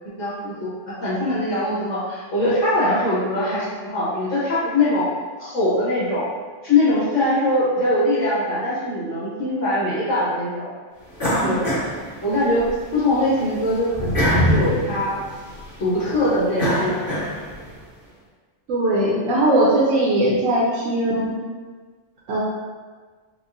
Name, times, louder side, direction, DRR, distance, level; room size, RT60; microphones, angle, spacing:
voice 1, 0.2-0.7 1.0-5.1 5.4-6.2 6.6-10.7 11.4-11.7 12.2-12.6 12.9-15.2 15.8-17.0, left 1 dB, 85° left, -9 dB, 1.6 m, -22 dB
sound 1, 11.2-12.7 13.1-17.7, equal, 45° left, 1.5 m, -24 dB
voice 2, 18.7-21.3 22.3-22.4, right 1 dB, 90° right, -6 dB, 1.1 m, -19 dB
5.9 x 2.1 x 2.5 m, 1.5 s
omnidirectional pair, 1.3 m